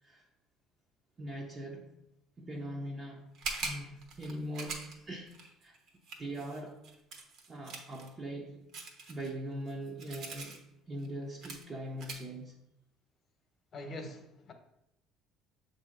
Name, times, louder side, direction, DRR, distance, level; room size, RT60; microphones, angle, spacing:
voice 1, 1.2-1.9 2.4-3.3 3.6-5.3 5.6-5.8 6.2-6.8 7.5-8.7 9.1-12.6, right 1 dB, 30° right, 0.7 m, -41 dB
sound 1, 3.3-8.1 8.7-10.6 11.0-11.1 11.4-11.6 12.0-12.2, right 4 dB, 65° right, 1.1 m, -42 dB
voice 2, 13.7-14.5, left 1 dB, 40° left, 1.0 m, -43 dB
6.8 x 2.8 x 5.0 m
cardioid pair, 110°, 0 cm